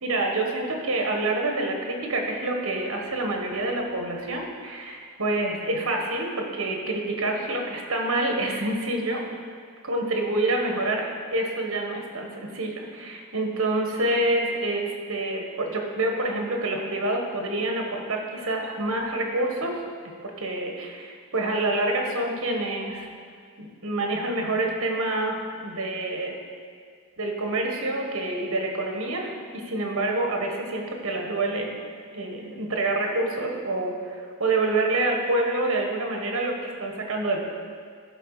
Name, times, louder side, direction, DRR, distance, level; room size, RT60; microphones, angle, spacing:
voice 1, 0.0-9.2 9.8-11.1 11.3-19.8 20.2-23.1 23.6-26.4 27.2-31.7 32.1-37.5, right 2 dB, 60° right, 1 dB, 1.5 m, -27 dB
14.0 x 5.8 x 4.9 m, 2.1 s
head